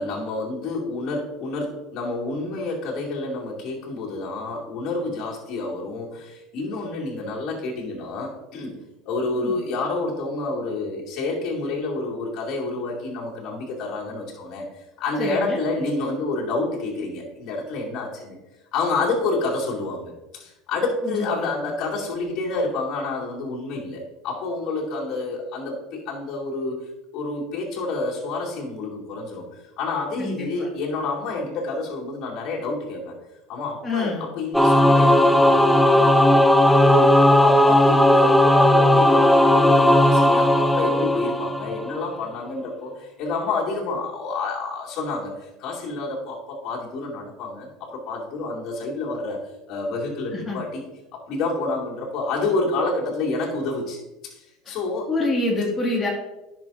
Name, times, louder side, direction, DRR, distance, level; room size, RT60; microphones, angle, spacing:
voice 1, 0.0-8.8 9.1-18.4 18.7-26.8 27.1-33.1 33.5-36.4 36.9-49.4 49.7-55.1, left 3 dB, 55° left, -4 dB, 2.4 m, -29 dB
voice 2, 15.2-15.6 21.0-21.5 30.2-30.7 33.8-34.3 50.3-50.6 54.7-54.8 55.1-56.1, left 2 dB, 20° left, -4 dB, 2.0 m, -26 dB
Singing / Musical instrument, 34.5-42.0, left 1 dB, 5° left, 0.5 m, -16 dB
10.5 x 6.3 x 2.6 m, 0.99 s
hypercardioid pair, 90°, 0 cm